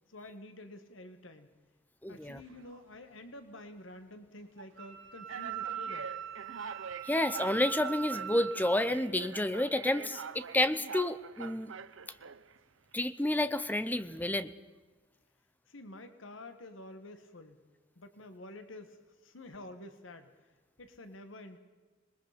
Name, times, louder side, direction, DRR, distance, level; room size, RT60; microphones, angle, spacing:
voice 1, 0.1-1.5 2.1-6.1 15.7-17.6 18.0-20.3 20.8-21.6, left 1 dB, 80° left, 8 dB, 1.7 m, -49 dB
voice 2, 2.0-2.4 7.0-11.7 12.9-14.5, left 1 dB, 10° left, 13 dB, 0.8 m, -30 dB
sound 1, 2.2-2.8 3.5-3.7 4.6-4.7 5.3-12.6, right 6 dB, 80° right, 0.8 m, -45 dB
Wind instrument woodwind instrument, 4.8-8.8, right 9 dB, 65° right, 4.4 m, -40 dB
26.5 x 20.5 x 5.2 m, 1.3 s
head